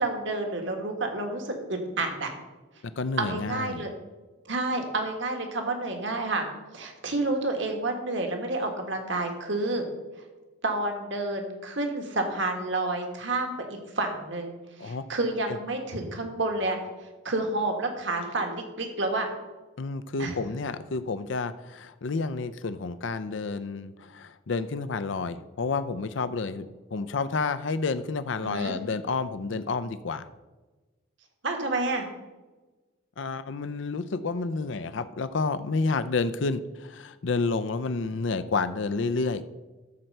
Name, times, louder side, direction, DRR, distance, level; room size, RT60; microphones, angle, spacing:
voice 1, 0.0-2.3 3.2-3.9 4.4-6.5 6.7-9.8 10.6-13.5 13.9-14.5 14.8-16.8 17.2-19.3 20.2-20.3 28.4-28.8 31.4-32.1, right 2 dB, 65° right, 4 dB, 1.6 m, -29 dB
voice 2, 3.0-3.8 14.8-15.0 15.5-15.6 19.8-30.3 33.2-39.4, left 4 dB, 65° left, 12 dB, 0.5 m, -30 dB
13.5 x 4.5 x 6.6 m, 1.2 s
head